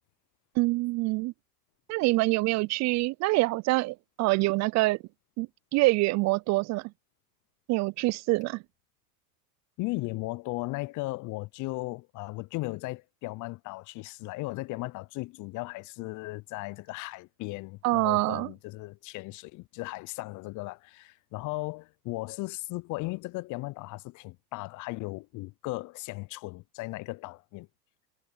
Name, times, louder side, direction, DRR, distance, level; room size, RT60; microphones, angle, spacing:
voice 1, 0.6-1.3 1.9-5.0 5.4-5.5 5.7-6.9 7.7-8.6 17.8-18.5, right 22 dB, 35° right, 0.5 m, -25 dB
voice 2, 9.8-27.7, left 22 dB, 40° left, 0.6 m, -36 dB
hypercardioid pair, 90°, 49 cm